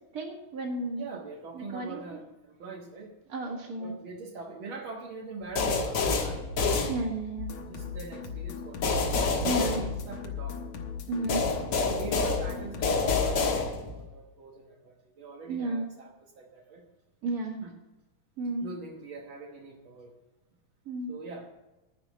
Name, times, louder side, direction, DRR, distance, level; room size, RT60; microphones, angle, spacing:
voice 1, 0.1-1.1 1.5-2.2 3.3-3.9 6.9-7.5 9.4-9.8 11.1-11.4 15.5-15.8 17.2-17.6 18.4-18.7 20.8-21.1, right 2 dB, 35° right, 1 dB, 1.6 m, -32 dB
voice 2, 1.0-3.1 3.6-6.6 7.7-10.6 11.8-16.9 17.6-17.7 18.6-20.1 21.1-21.5, right 3 dB, 75° right, 0 dB, 1.1 m, -43 dB
sound 1, 5.6-7.5 8.8-10.6 11.3-14.1, left 4 dB, 50° left, 1.9 m, -28 dB
sound 2, 7.4-13.0, left 7 dB, 65° left, 2.3 m, -38 dB
11.5 x 5.7 x 9.1 m, 1.1 s
omnidirectional pair, 4.1 m